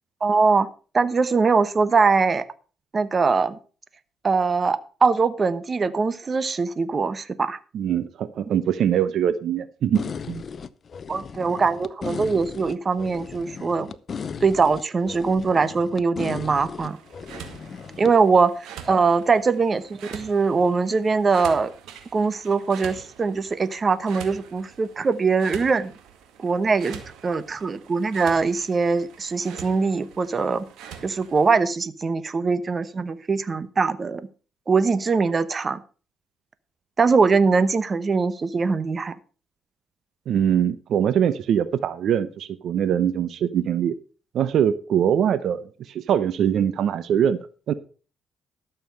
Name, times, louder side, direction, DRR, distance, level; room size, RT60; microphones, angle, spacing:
voice 1, 0.2-0.7 0.9-2.4 2.9-3.6 4.2-7.6 11.1-13.9 14.4-17.0 18.0-21.7 22.1-25.9 26.4-30.6 31.0-34.3 34.7-35.8 37.0-39.1, right 4 dB, 35° right, 15 dB, 1.0 m, -22 dB
voice 2, 7.7-10.4 40.3-44.0 44.3-47.4 47.7-47.8, right 9 dB, 70° right, 15 dB, 0.8 m, -22 dB
sound 1, 9.9-18.1, left 6 dB, 45° left, 0.7 m, -36 dB
sound 2, 16.8-31.6, right 8 dB, 90° right, 2.1 m, -44 dB
13.0 x 7.0 x 5.4 m, 0.37 s
cardioid pair, 90°, 0 cm